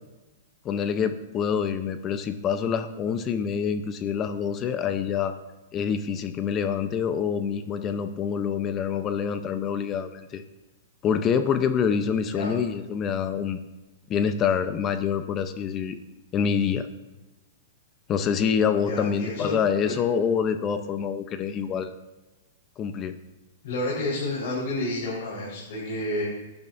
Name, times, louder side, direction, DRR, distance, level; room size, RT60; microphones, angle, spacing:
voice 1, 0.6-5.4 5.7-10.4 11.0-13.6 14.1-16.0 16.3-16.9 18.1-21.9 22.8-23.2, left 7 dB, 30° left, 10 dB, 0.7 m, -26 dB
voice 2, 18.8-19.5 23.6-26.2, left 1 dB, 60° left, -6 dB, 4.4 m, -30 dB
15.0 x 10.5 x 2.7 m, 1.1 s
hypercardioid pair, 135°, 0 cm